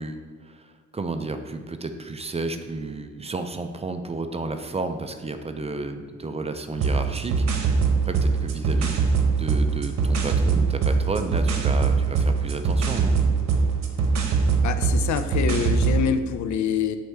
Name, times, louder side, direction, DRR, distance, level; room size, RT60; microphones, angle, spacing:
voice 1, 0.0-9.0 9.4-13.2, right 3 dB, 20° right, 7 dB, 0.4 m, -32 dB
sound 1, 6.7-16.0, right 4 dB, 65° right, 1.0 m, -22 dB
voice 2, 14.6-17.0, left 8 dB, 70° left, 10 dB, 0.5 m, -25 dB
7.9 x 4.3 x 3.4 m, 1.5 s
cardioid pair, 90°, 30 cm